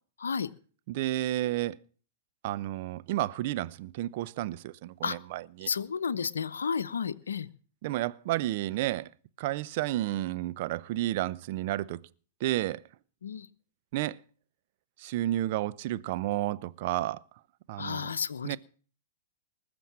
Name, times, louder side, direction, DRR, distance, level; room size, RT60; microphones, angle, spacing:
voice 1, 0.2-0.5 5.0-5.2 5.7-7.5 13.2-13.5 17.8-18.6, left 6 dB, 80° left, 0.8 m, -32 dB
voice 2, 0.9-1.8 2.4-5.7 7.8-9.1 9.4-12.0 12.4-12.8 13.9-14.2 15.0-17.2 17.7-18.1 18.4-18.6, right 15 dB, 55° right, 0.7 m, -31 dB
20.0 x 7.0 x 7.4 m
hypercardioid pair, 115°, 0 cm